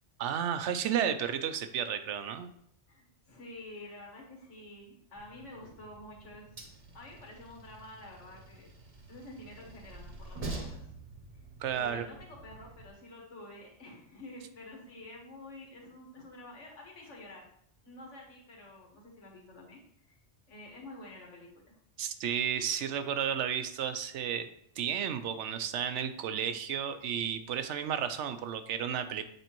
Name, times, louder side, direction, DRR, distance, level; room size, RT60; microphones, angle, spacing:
voice 1, 0.2-2.5 11.6-12.1 22.0-24.5 24.8-29.2, right 8 dB, 80° right, 9 dB, 0.9 m, -32 dB
voice 2, 2.9-6.7 6.9-8.7 9.1-10.9 11.7-17.5 17.8-20.2 20.5-21.8, left 1 dB, 85° left, -1 dB, 1.8 m, -49 dB
Train, 5.2-12.9, right 3 dB, 35° right, 0.9 m, -46 dB
8.0 x 4.3 x 3.0 m, 0.68 s
omnidirectional pair, 1.2 m